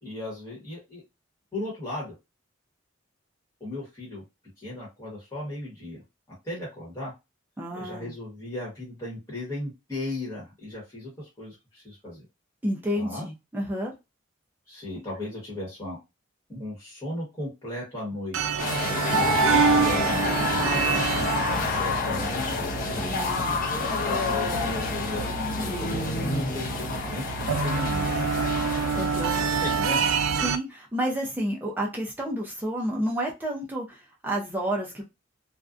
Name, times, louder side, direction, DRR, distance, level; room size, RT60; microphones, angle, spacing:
voice 1, 0.0-1.0 1.5-2.1 3.6-4.2 4.6-6.0 6.4-7.1 7.7-12.3 12.9-13.3 14.7-16.0 16.5-18.8 19.1-21.0 21.5-22.5 24.1-25.3 25.6-28.3 29.5-30.1, left 1 dB, 15° left, 1.1 m, -36 dB
voice 2, 7.6-8.1 12.6-13.9 23.0-23.6 28.9-29.4 30.3-35.0, equal, 10° right, 0.5 m, -30 dB
sound 1, 18.3-30.6, right 6 dB, 85° right, 0.3 m, -27 dB
sound 2, 18.6-29.8, left 4 dB, 40° left, 0.5 m, -29 dB
2.5 x 2.2 x 2.4 m
head